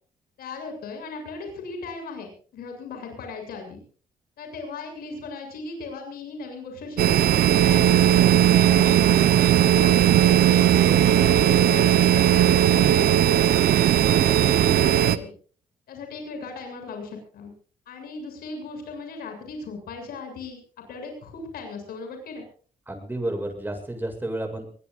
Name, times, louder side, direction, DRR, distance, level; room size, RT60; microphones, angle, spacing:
voice 1, 0.4-3.8 4.4-13.2 13.7-15.3 15.9-17.5 17.9-20.6 20.9-22.4, left 4 dB, 75° left, 5 dB, 7.3 m, -37 dB
sound 1, 7.0-15.2, right 11 dB, 75° right, 1.0 m, -18 dB
voice 2, 22.9-24.7, right 1 dB, 10° right, 4 dB, 7.9 m, -31 dB
24.0 x 20.5 x 2.6 m, 0.42 s
cardioid pair, 105°, 16 cm